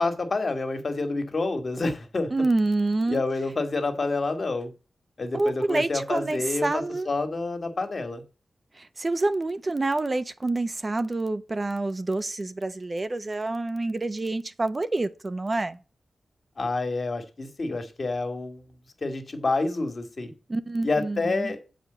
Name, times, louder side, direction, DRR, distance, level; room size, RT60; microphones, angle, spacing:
voice 1, 0.0-2.3 3.1-4.7 5.2-8.2 16.6-18.6 19.0-20.3 20.8-21.6, left 3 dB, 50° left, 1.9 m, -28 dB
voice 2, 2.3-3.2 5.3-7.1 8.8-15.8 20.5-21.5, right 2 dB, 35° right, 0.8 m, -27 dB
7.4 x 5.1 x 6.8 m
cardioid pair, 70°, 0 cm